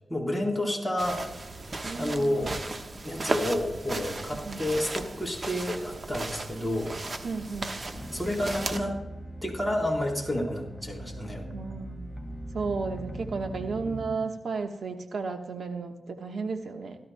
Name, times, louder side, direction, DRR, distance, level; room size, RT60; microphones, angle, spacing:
voice 1, 0.1-1.2 2.0-2.6 3.0-6.9 8.1-9.0 9.4-11.4 13.9-14.3, left 1 dB, 5° right, 0 dB, 3.7 m, -30 dB
sound 1, 1.0-8.8, right 2 dB, 45° right, 1.1 m, -36 dB
voice 2, 1.8-2.6 4.3-4.6 7.2-7.7 11.5-12.1 12.5-17.0, right 4 dB, 75° right, 5 dB, 1.2 m, -34 dB
sound 2, 7.9-14.1, right 1 dB, 20° left, 1.8 m, -40 dB
17.0 x 12.5 x 2.2 m, 0.99 s
cardioid pair, 60°, 0 cm